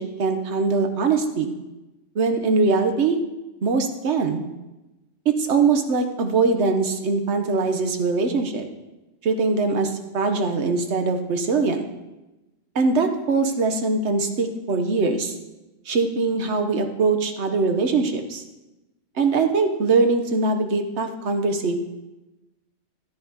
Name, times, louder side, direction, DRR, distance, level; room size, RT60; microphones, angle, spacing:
voice 1, 0.0-1.5 2.1-3.2 3.6-4.4 5.2-8.7 9.2-11.8 12.7-15.3 15.9-18.4 19.2-21.8, right 4 dB, 60° right, 6 dB, 1.2 m, -22 dB
13.0 x 10.5 x 2.9 m, 1.0 s
omnidirectional pair, 1.3 m